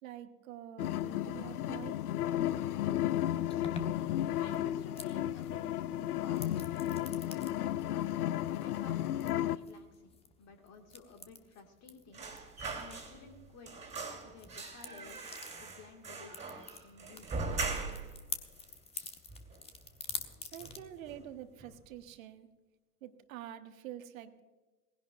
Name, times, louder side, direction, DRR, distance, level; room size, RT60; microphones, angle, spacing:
voice 1, 0.0-2.0 20.5-22.5 23.0-24.4, right 11 dB, 60° right, 8 dB, 1.4 m, -47 dB
sound 1, 0.8-9.6, left 12 dB, 70° left, 0.6 m, -33 dB
sound 2, 3.5-20.8, left 4 dB, 15° left, 1.1 m, -49 dB
voice 2, 4.4-8.2 8.6-10.1 10.4-13.7 14.2-17.7, left 4 dB, 35° left, 4 dB, 2.1 m, -54 dB
sound 3, 12.1-13.4 13.7-18.2 18.5-18.6 18.9-19.8 20.1-20.3 20.6-21.3 21.6-21.8, right 4 dB, 15° right, 3.2 m, -41 dB
19.0 x 16.0 x 2.5 m, 1.2 s
figure-of-eight pair, 95°, 47 cm